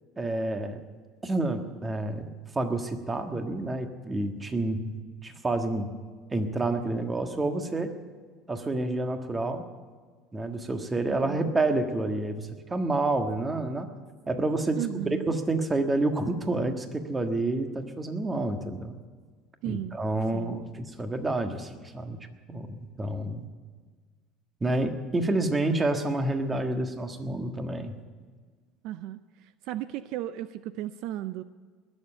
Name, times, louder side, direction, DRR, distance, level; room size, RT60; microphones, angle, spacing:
voice 1, 0.2-0.8 1.2-2.3 2.5-5.9 6.3-7.9 8.5-9.6 10.3-13.9 14.3-18.9 19.6-22.2 22.5-23.5 24.6-27.9, right 2 dB, 15° right, 6 dB, 1.5 m, -29 dB
voice 2, 11.1-11.5 14.8-15.4 19.6-20.0 20.3-20.5 28.8-31.4, right 13 dB, 65° right, 14 dB, 0.5 m, -35 dB
20.0 x 7.2 x 8.9 m, 1.5 s
supercardioid pair, 125°, 0 cm